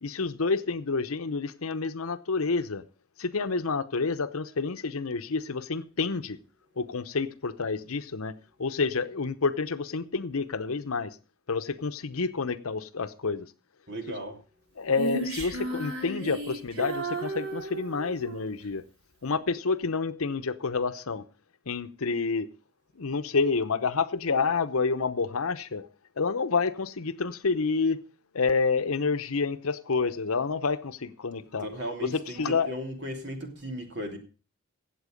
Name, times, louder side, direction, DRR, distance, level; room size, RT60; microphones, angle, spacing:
voice 1, 0.0-2.8 3.2-6.4 6.8-8.3 8.6-11.2 11.5-13.5 14.1-14.2 14.8-18.8 19.2-21.2 21.7-22.5 23.0-25.9 26.2-28.0 28.3-31.7 32.0-32.8, left 4 dB, 80° left, 0.8 m, -28 dB
voice 2, 13.9-14.4 31.6-34.2, equal, 55° right, 2.9 m, -36 dB
Female singing, 14.9-18.5, right 2 dB, 75° right, 3.9 m, -34 dB
16.5 x 7.9 x 5.1 m
head